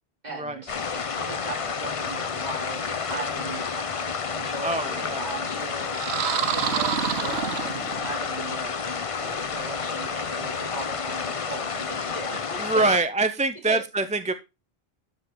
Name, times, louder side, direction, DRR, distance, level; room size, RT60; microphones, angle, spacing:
voice 1, 0.2-12.9 13.7-13.8, right 2 dB, 40° right, 4.0 m, -38 dB
sound 1, 0.7-13.0, left 5 dB, 35° left, 0.7 m, -30 dB
voice 2, 4.6-5.3 9.1-9.5 12.6-14.3, right 3 dB, 10° right, 0.5 m, -25 dB
sound 2, 5.9-8.2, right 9 dB, 85° right, 1.0 m, -28 dB
13.0 x 5.4 x 4.6 m
omnidirectional pair, 1.1 m